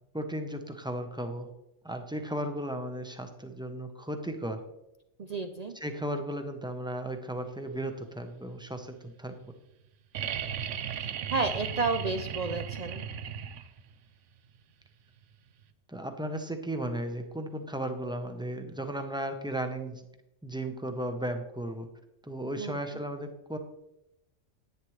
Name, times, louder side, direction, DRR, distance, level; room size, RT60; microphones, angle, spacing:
voice 1, 0.1-1.5 1.8-4.6 5.8-9.4 15.9-20.0 20.4-21.9 22.2-23.6, right 1 dB, 5° right, 6 dB, 0.7 m, -35 dB
voice 2, 5.2-5.8 11.0-13.1 22.6-23.0, right 3 dB, 50° right, 7 dB, 0.5 m, -32 dB
sound 1, 10.1-13.9 15.6-15.7, right 8 dB, 85° right, 1.0 m, -36 dB
10.5 x 9.2 x 3.2 m, 0.85 s
omnidirectional pair, 1.2 m